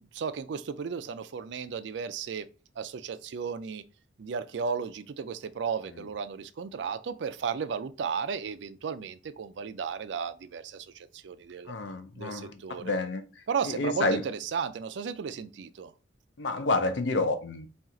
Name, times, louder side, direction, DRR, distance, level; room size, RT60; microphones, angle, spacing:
voice 1, 0.0-2.5 2.8-3.8 4.2-11.7 12.1-12.9 13.5-15.9, right 6 dB, 70° right, 0.4 m, -34 dB
voice 2, 11.7-14.2 16.4-17.7, left 2 dB, 75° left, 0.5 m, -29 dB
4.3 x 2.4 x 3.6 m
head